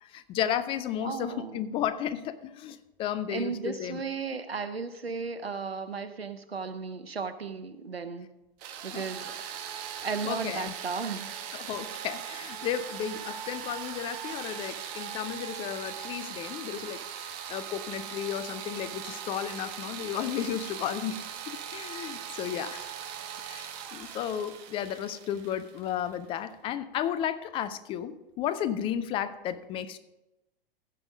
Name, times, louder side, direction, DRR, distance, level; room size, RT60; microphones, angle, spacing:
voice 1, 0.0-4.0 8.9-9.0 10.2-10.7 11.5-17.0 17.5-23.0 23.3-30.0, left 9 dB, 20° left, 13 dB, 0.3 m, -33 dB
voice 2, 1.0-1.6 3.3-8.3 8.8-9.4 10.0-11.3, right 5 dB, 85° right, 11 dB, 0.8 m, -35 dB
sound 1, 8.6-26.3, right 9 dB, 45° right, 1.2 m, -40 dB
15.0 x 5.3 x 5.2 m, 0.97 s
figure-of-eight pair, 100°, 29 cm